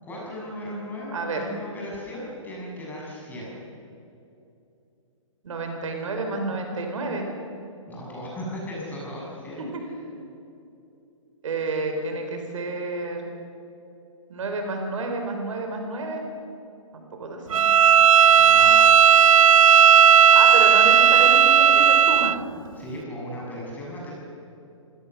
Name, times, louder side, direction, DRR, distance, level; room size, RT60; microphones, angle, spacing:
voice 1, 0.0-3.6 7.9-10.0 18.4-18.7 22.7-24.2, equal, 10° left, -4 dB, 7.3 m, -36 dB
voice 2, 1.1-1.4 5.4-7.3 11.4-13.2 14.3-16.2 16.9-17.6 20.3-22.4, right 3 dB, 65° right, 3 dB, 4.5 m, -30 dB
Bowed string instrument, 17.5-22.4, right 8 dB, 85° right, 0.4 m, -14 dB
26.5 x 17.0 x 6.9 m, 2.8 s
hypercardioid pair, 145°, 17 cm